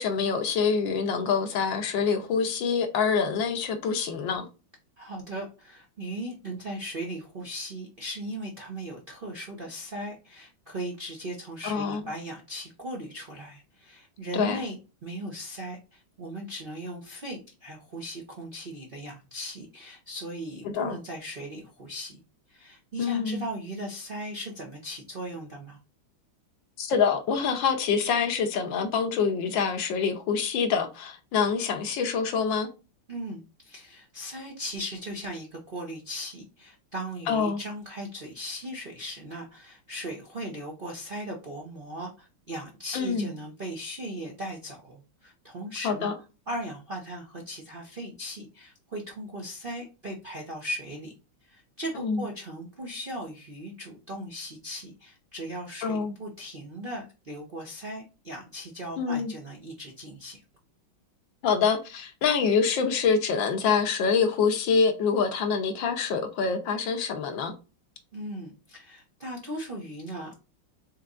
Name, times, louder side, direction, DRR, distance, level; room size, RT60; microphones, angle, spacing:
voice 1, 0.0-4.5 11.7-12.0 14.3-14.6 20.6-21.0 23.0-23.4 26.8-32.7 37.3-37.6 42.9-43.3 45.8-46.1 52.0-52.2 55.8-56.1 59.0-59.3 61.4-67.5, left 6 dB, 70° left, 1.4 m, -26 dB
voice 2, 5.0-22.2 22.5-25.8 33.1-46.1 46.5-51.1 51.5-60.4 68.1-70.3, right 1 dB, 50° right, 0.6 m, -38 dB
4.5 x 3.9 x 2.5 m
omnidirectional pair, 2.3 m